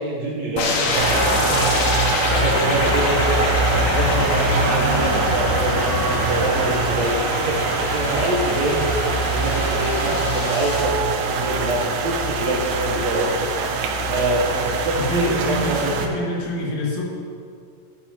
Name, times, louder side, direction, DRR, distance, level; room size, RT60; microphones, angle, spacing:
voice 1, 0.0-1.8 2.3-7.2 7.4-7.6 7.9-8.8 9.3-13.4 14.1-16.0, right 2 dB, 65° right, -3 dB, 2.0 m, -25 dB
sound 1, 0.6-10.8, left 3 dB, 80° left, 2.6 m, -26 dB
sound 2, 0.9-16.1, right 3 dB, 85° right, 2.4 m, -23 dB
voice 2, 14.9-17.1, left 1 dB, 60° left, -3 dB, 2.8 m, -27 dB
11.0 x 10.5 x 2.9 m, 2.3 s
omnidirectional pair, 3.8 m